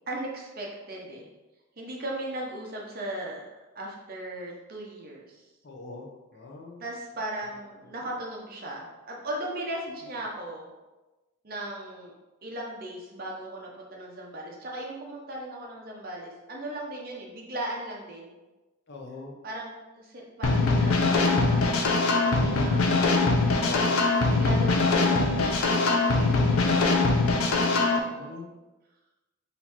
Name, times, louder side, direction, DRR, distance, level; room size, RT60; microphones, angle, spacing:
voice 1, 0.1-1.3 1.8-3.5 3.7-5.5 6.8-10.7 11.4-12.1 12.4-18.4 19.4-23.6 24.3-25.2 25.7-28.3, right 1 dB, 45° right, -2 dB, 0.8 m, -38 dB
voice 2, 5.6-6.8 10.0-10.1 18.9-19.4 22.2-22.8 23.5-24.0 28.1-28.6, left 3 dB, 50° left, 1 dB, 0.7 m, -41 dB
sound 1, 20.4-28.0, left 3 dB, 85° left, 0.6 m, -22 dB
4.1 x 2.7 x 4.4 m, 1.1 s
head